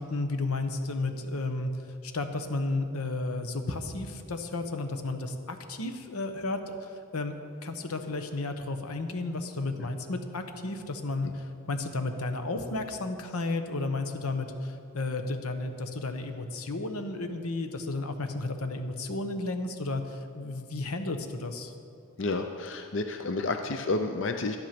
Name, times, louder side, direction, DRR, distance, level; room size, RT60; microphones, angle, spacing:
voice 1, 0.0-1.7 2.0-7.3 7.6-21.7, left 2 dB, 90° left, 7 dB, 1.0 m, -33 dB
voice 2, 22.2-24.6, left 3 dB, 55° left, 6 dB, 0.6 m, -30 dB
12.0 x 10.5 x 5.9 m, 2.4 s
head